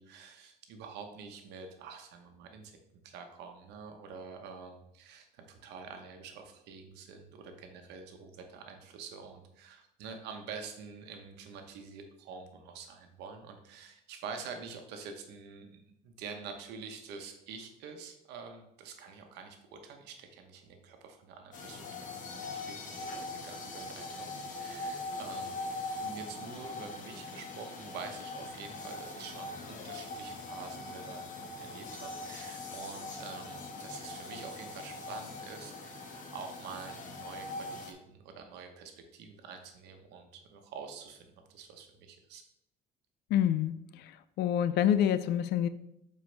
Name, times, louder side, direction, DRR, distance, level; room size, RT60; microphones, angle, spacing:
voice 1, 0.0-2.8 3.0-25.5 26.0-42.4, right 5 dB, 90° right, 5 dB, 1.1 m, -47 dB
sound 1, 21.5-37.9, left 2 dB, 50° left, 1.3 m, -42 dB
voice 2, 43.3-44.1 44.4-45.7, left 10 dB, 75° left, 14 dB, 0.5 m, -27 dB
7.8 x 4.5 x 3.4 m, 0.80 s
cardioid pair, 110°, 17 cm